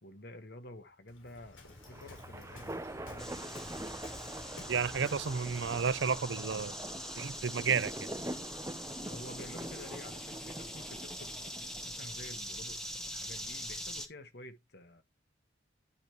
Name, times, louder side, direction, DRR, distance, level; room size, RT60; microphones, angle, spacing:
voice 1, 0.0-3.5 9.1-15.0, left 1 dB, 55° left, 1.4 m, -50 dB
Waves surf, 1.1-6.3, left 2 dB, 85° left, 3.8 m, -52 dB
sound 1, 1.6-12.1, right 1 dB, 15° right, 0.7 m, -45 dB
sound 2, 3.2-14.1, equal, 5° left, 1.2 m, -43 dB
voice 2, 4.7-6.7 7.2-7.9, right 6 dB, 65° right, 0.6 m, -31 dB
11.0 x 5.0 x 3.1 m
head